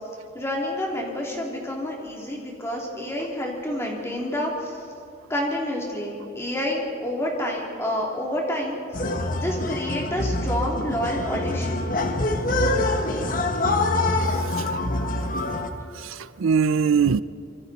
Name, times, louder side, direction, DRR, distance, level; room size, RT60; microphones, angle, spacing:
voice 1, 0.3-4.8 5.3-11.9, left 1 dB, 15° left, 2.9 m, -29 dB
sound 1, 8.9-15.7, left 2 dB, 40° left, 1.2 m, -25 dB
voice 2, 14.3-15.0 16.0-17.2, right 6 dB, 80° right, 0.4 m, -23 dB
25.5 x 24.0 x 4.2 m
head